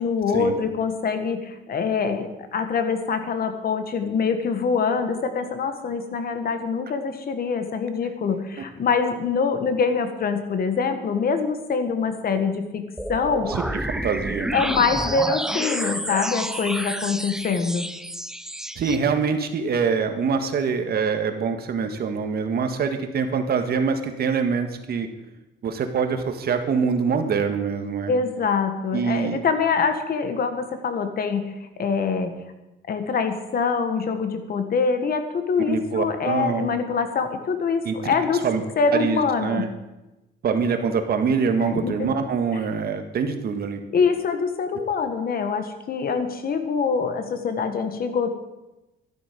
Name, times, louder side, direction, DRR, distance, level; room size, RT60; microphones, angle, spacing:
voice 1, 0.0-13.5 14.5-17.9 28.1-32.3 32.9-38.4 38.8-39.6 41.6-42.1 43.9-48.3, left 5 dB, 50° left, 8 dB, 1.6 m, -24 dB
sound 1, 13.0-19.0, right 1 dB, 5° right, 0.6 m, -29 dB
voice 2, 13.5-14.6 18.8-25.1 25.6-28.1 28.9-29.4 35.7-36.7 37.8-38.1 38.4-38.6 38.9-39.7 40.4-43.8, right 5 dB, 55° right, 6 dB, 1.6 m, -24 dB
13.0 x 11.5 x 5.3 m, 1.0 s
cardioid pair, 120°, 19 cm